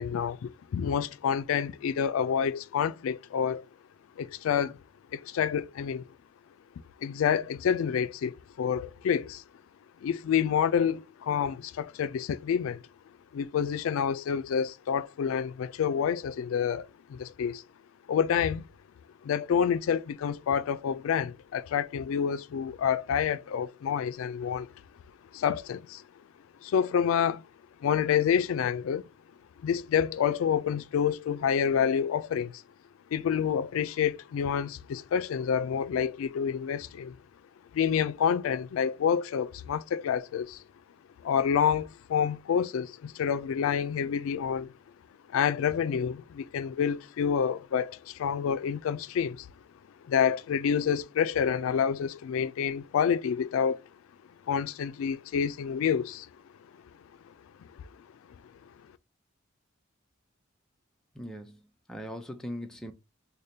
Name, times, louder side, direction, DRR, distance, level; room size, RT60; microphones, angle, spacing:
voice 1, 0.0-3.6 4.2-4.8 5.1-6.1 7.0-9.4 10.0-12.8 13.3-17.6 18.1-18.6 19.2-24.7 25.3-26.0 26.6-27.4 27.8-29.1 29.6-32.6 33.1-37.2 37.7-40.6 41.2-44.7 45.3-49.5 50.1-53.8 54.5-56.3, left 7 dB, 80° left, 0.3 m, -28 dB
voice 2, 61.1-61.6 61.9-62.9, equal, 5° left, 0.4 m, -39 dB
5.0 x 2.1 x 2.7 m
head